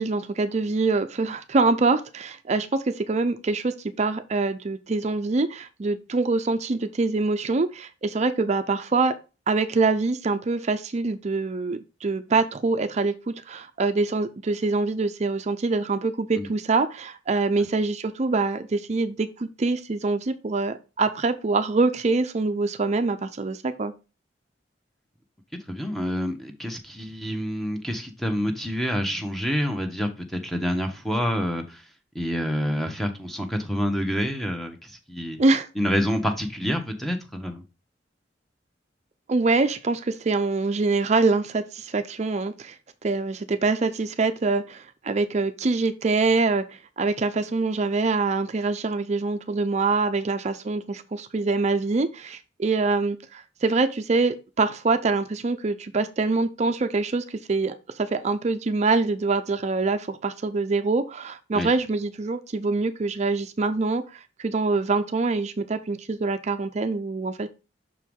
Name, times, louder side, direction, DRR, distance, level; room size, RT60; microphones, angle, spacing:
voice 1, 0.0-9.1 9.5-23.9 35.4-35.7 39.3-42.8 43.0-46.6 47.0-64.0 64.4-67.5, right 3 dB, 35° right, 0.4 m, -24 dB
voice 2, 25.7-31.8 32.1-35.4 35.8-37.6 61.5-61.7, equal, ahead, 0.9 m, -27 dB
6.0 x 4.6 x 3.6 m
head